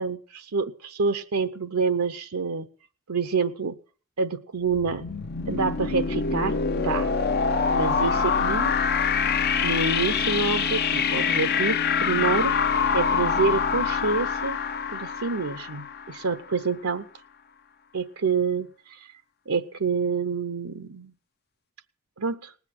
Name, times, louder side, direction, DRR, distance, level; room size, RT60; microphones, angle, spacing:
voice 1, 0.0-2.7 3.1-3.7 4.2-5.1 5.5-7.1 7.7-8.7 9.6-12.5 12.9-14.6 14.9-17.1 17.9-19.1 19.5-21.1 22.2-22.5, right 4 dB, 80° right, 9 dB, 0.8 m, -27 dB
sound 1, 4.7-16.4, left 6 dB, 45° left, 0.7 m, -25 dB
19.0 x 8.1 x 7.5 m, 0.43 s
head